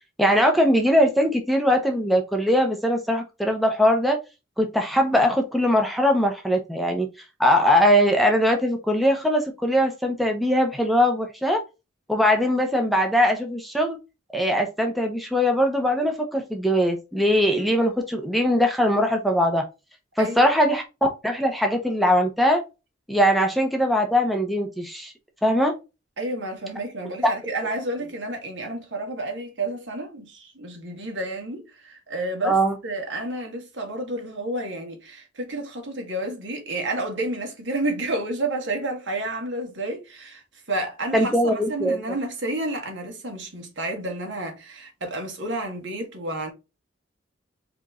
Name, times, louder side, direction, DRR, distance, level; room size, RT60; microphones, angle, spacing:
voice 1, 0.2-4.2 4.6-7.1 7.4-11.6 12.1-14.0 14.3-19.6 20.2-20.8 21.2-22.6 23.1-25.1 25.4-25.7 27.2-27.3 32.4-32.7 41.1-42.0, equal, ahead, 0.6 m, -21 dB
voice 2, 20.2-20.5 26.2-40.4 40.7-46.5, right 2 dB, 65° right, 1.6 m, -30 dB
4.9 x 3.0 x 2.4 m
head